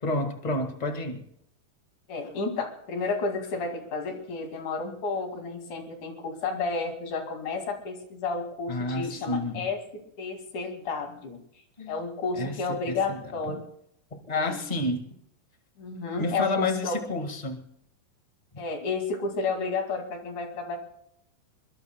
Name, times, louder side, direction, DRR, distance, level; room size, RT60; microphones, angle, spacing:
voice 1, 0.0-1.2 8.7-9.7 11.8-11.9 12.4-13.6 14.3-15.0 16.2-17.6 18.5-18.6, left 2 dB, 30° left, 5 dB, 0.7 m, -30 dB
voice 2, 2.1-11.4 11.9-13.6 14.3-14.6 15.8-17.0 18.6-20.8, left 4 dB, 65° left, 4 dB, 3.7 m, -31 dB
23.0 x 22.0 x 2.2 m, 0.71 s
omnidirectional pair, 3.8 m